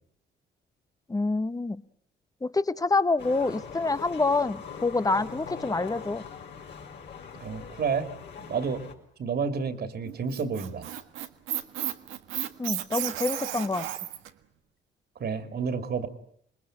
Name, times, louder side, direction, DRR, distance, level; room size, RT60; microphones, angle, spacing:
voice 1, 1.1-1.8 2.4-6.2 12.6-13.9, left 3 dB, 20° left, 14 dB, 1.2 m, -27 dB
sound 1, 3.2-8.9, left 6 dB, 60° left, 4.8 m, -42 dB
voice 2, 7.4-8.1 8.5-8.8 9.2-10.9 15.2-16.1, right 5 dB, 55° right, 10 dB, 2.9 m, -30 dB
Squeak, 10.1-14.3, right 12 dB, 90° right, 1.6 m, -33 dB
28.0 x 20.5 x 9.1 m, 0.65 s
cardioid pair, 90°, 20 cm